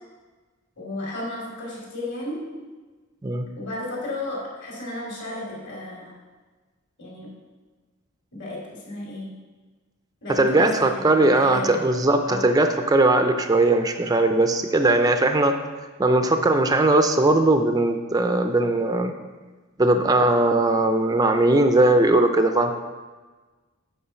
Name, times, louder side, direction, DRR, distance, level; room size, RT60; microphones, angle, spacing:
voice 1, 0.8-2.4 3.6-6.1 7.0-7.3 8.3-9.3 10.2-11.8 12.2-12.5, left 1 dB, 55° left, -3 dB, 2.8 m, -33 dB
voice 2, 10.3-15.6 16.0-19.1 19.8-22.7, right 2 dB, 15° right, 6 dB, 0.4 m, -19 dB
8.6 x 4.5 x 5.8 m, 1.3 s
head